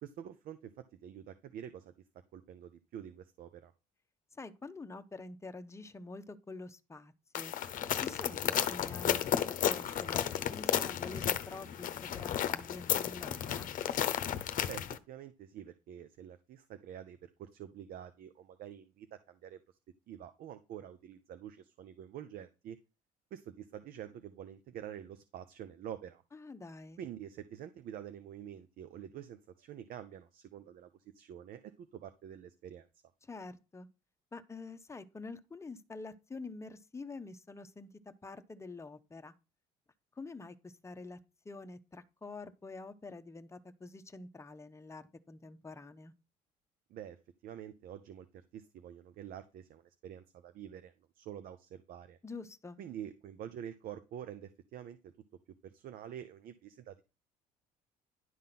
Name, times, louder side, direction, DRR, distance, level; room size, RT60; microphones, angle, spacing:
voice 1, 0.0-0.7 1.0-1.9 2.3-3.7 14.7-19.6 20.1-22.8 23.3-26.2 27.0-30.9 31.1-32.9 46.9-47.2 47.4-48.3 48.5-52.2 52.8-55.1 55.6-57.0, right 10 dB, 60° right, 0.7 m, -47 dB
voice 2, 4.3-7.5 7.9-13.7 26.3-27.0 33.2-33.9 34.3-39.3 40.2-41.2 41.4-46.1 52.2-52.8, left 3 dB, 15° left, 0.9 m, -47 dB
sound 1, 7.3-15.0, left 10 dB, 55° left, 0.8 m, -33 dB
11.0 x 3.7 x 5.9 m
supercardioid pair, 85°, 16 cm